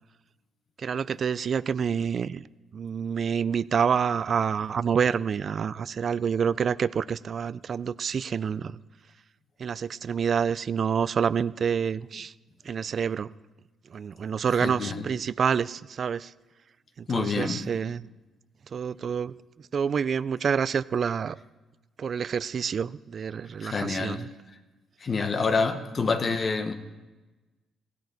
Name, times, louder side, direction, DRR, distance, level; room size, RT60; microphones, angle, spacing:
voice 1, 0.8-2.5 2.7-8.8 9.6-12.3 12.6-13.3 13.9-16.3 17.0-18.1 18.7-19.3 19.7-21.4 22.0-24.3, right 7 dB, 50° right, 18 dB, 0.4 m, -27 dB
voice 2, 14.6-15.0 17.1-17.7 23.6-24.3 25.0-26.7, left 4 dB, 40° left, 8 dB, 1.2 m, -27 dB
16.0 x 12.0 x 4.0 m, 1.2 s
cardioid pair, 90°, 0 cm